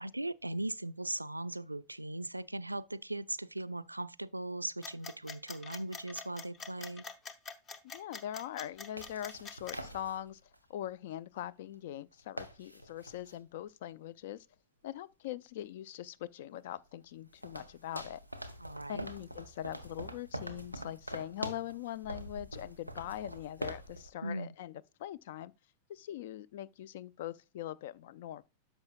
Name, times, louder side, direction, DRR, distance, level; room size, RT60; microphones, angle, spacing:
voice 1, 0.0-7.0 18.6-19.1 24.2-24.6, right 1 dB, 85° right, 0.3 m, -39 dB
sound 1, 4.8-9.8, left 5 dB, 30° left, 0.9 m, -45 dB
sound 2, 5.8-5.9 8.6-10.6 11.4-11.5 11.7-11.8 12.1-13.4 15.9-16.0 16.6-24.1, right 1 dB, 90° left, 0.8 m, -45 dB
voice 2, 7.8-10.4 10.7-14.5 14.8-18.2 18.9-24.7 25.0-25.5 25.9-28.4, left 12 dB, 55° left, 0.4 m, -42 dB
10.5 x 6.8 x 2.3 m
figure-of-eight pair, 90°, 0 cm